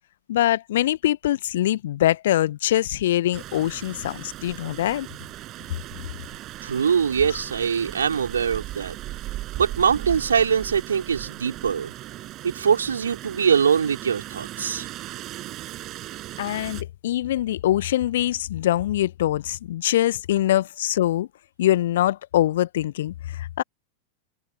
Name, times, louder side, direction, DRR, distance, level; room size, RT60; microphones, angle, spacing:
voice 1, 0.3-5.1 16.4-21.3 21.6-23.6, left 13 dB, 60° left, 1.2 m, -23 dB
Rain, 3.3-16.8, right 15 dB, 35° right, 6.0 m, -37 dB
voice 2, 6.6-9.0 9.6-11.9 12.4-14.9, right 7 dB, 70° right, 5.2 m, -23 dB
open air
figure-of-eight pair, 90°, 0 cm